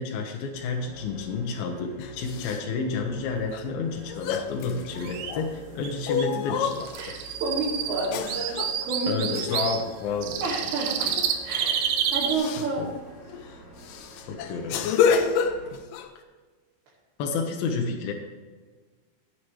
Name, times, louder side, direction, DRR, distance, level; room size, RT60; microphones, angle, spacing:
voice 1, 0.0-7.2 9.1-10.4 12.8-12.9 14.3-14.9 17.2-18.1, left 4 dB, 75° left, 1 dB, 2.7 m, -30 dB
sound 1, 0.5-15.7, right 1 dB, 25° left, 4.0 m, -48 dB
sound 2, 2.0-2.6 3.5-3.6 4.1-5.5 6.1-7.2 8.1-8.8 9.3-9.7 11.1-11.3 11.6-11.8 12.3-12.7 13.3-13.4 13.8-16.1, left 6 dB, 90° left, 1.9 m, -28 dB
sound 3, 5.0-5.3 5.8-5.9 6.2-6.3 6.7-9.8 10.2-12.4, right 8 dB, 85° right, 3.1 m, -29 dB
voice 2, 7.0-8.6 8.8-9.2 10.4-11.1 11.4-12.8, right 3 dB, 70° right, -8 dB, 4.4 m, -30 dB
16.5 x 8.7 x 3.2 m, 1.4 s
omnidirectional pair, 4.8 m